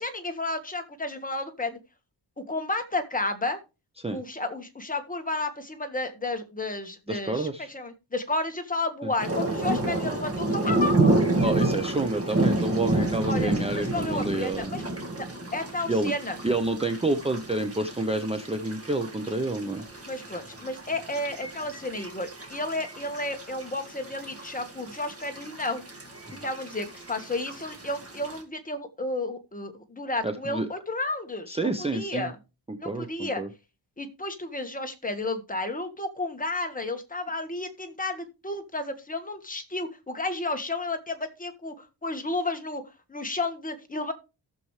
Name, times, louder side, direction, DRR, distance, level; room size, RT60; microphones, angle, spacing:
voice 1, 0.0-1.8 2.4-3.6 4.1-11.2 13.3-14.8 15.1-15.2 15.5-16.4 20.0-25.8 26.4-32.3 32.8-33.4 34.0-42.8 43.1-44.1, left 2 dB, 20° left, 5 dB, 1.5 m, -32 dB
voice 2, 7.1-7.7 9.0-9.1 11.4-14.7 15.9-16.1 16.4-19.8 26.3-26.4 30.2-30.7 31.5-32.3 32.7-33.5, right 2 dB, 15° right, 7 dB, 0.8 m, -29 dB
sound 1, 9.2-28.4, right 2 dB, 30° right, 2.0 m, -30 dB
15.5 x 7.0 x 3.2 m, 0.30 s
wide cardioid pair, 125°, 45 cm